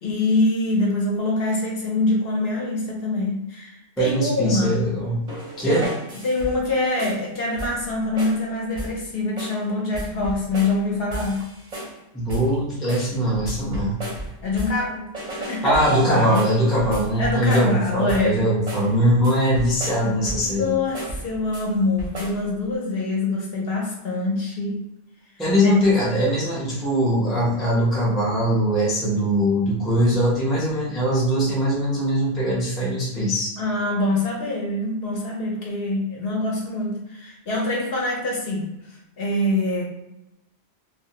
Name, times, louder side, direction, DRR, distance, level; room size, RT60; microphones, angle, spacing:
voice 1, 0.0-4.8 5.7-5.9 6.2-11.4 14.4-15.1 15.4-16.4 17.2-18.4 20.4-24.8 25.6-25.7 33.6-39.8, left 2 dB, 60° left, -2 dB, 0.8 m, -25 dB
voice 2, 4.0-5.3 5.6-5.9 12.1-14.0 15.6-20.8 25.4-33.5, equal, ahead, -5 dB, 0.4 m, -21 dB
sound 1, 5.3-6.7 7.0-7.3 7.6-7.9 8.2-8.4 8.8-9.0 9.4-9.6 9.9-10.8 11.1-12.0 12.3-12.6 12.9-14.9 15.1-17.8 18.1-18.4 18.7-18.9 19.2-20.6 20.9-21.7 22.0-22.4, right 1 dB, 40° right, 0.6 m, -34 dB
2.3 x 2.0 x 2.8 m, 0.90 s
omnidirectional pair, 1.2 m